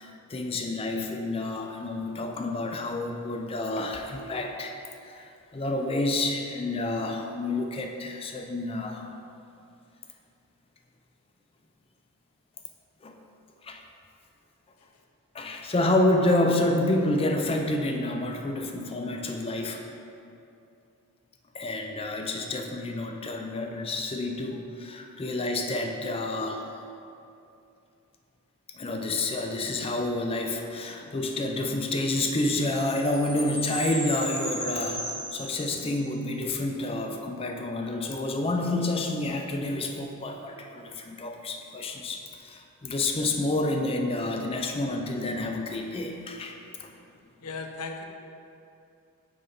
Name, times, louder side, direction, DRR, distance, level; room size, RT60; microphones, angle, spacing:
voice 1, 0.0-4.8 5.0-9.1 13.0-13.1 13.6-13.8 15.3-19.9 21.5-26.7 28.8-46.9, left 2 dB, 25° left, 3 dB, 0.4 m, -29 dB
Chime, 32.4-36.1, equal, 10° right, 1.1 m, -36 dB
voice 2, 47.4-48.0, left 4 dB, 85° left, 4 dB, 0.6 m, -36 dB
5.6 x 4.2 x 5.3 m, 2.6 s
head